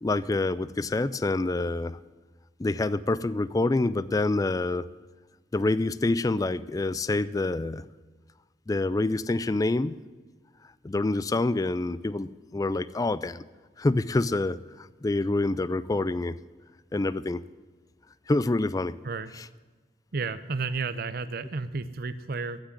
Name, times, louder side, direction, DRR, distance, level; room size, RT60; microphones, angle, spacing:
voice 1, 0.0-2.0 2.6-4.9 5.5-7.9 8.7-10.0 10.8-13.4 13.8-16.4 16.9-17.4 18.3-19.0 19.4-19.5, left 2 dB, 20° left, 16 dB, 0.4 m, -27 dB
voice 2, 20.1-22.6, right 4 dB, 55° right, 13 dB, 0.6 m, -32 dB
15.5 x 6.2 x 9.8 m, 1.3 s
head